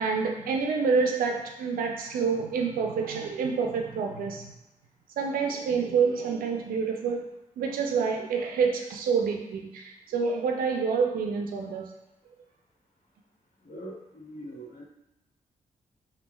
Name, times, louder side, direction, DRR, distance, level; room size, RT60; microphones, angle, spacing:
voice 1, 0.0-4.5 5.2-7.3 7.6-11.9, right 5 dB, 80° right, 2 dB, 0.4 m, -27 dB
voice 2, 13.6-14.8, right 1 dB, 65° left, -3 dB, 0.9 m, -42 dB
3.0 x 2.2 x 2.2 m, 0.91 s
supercardioid pair, 50°, 15 cm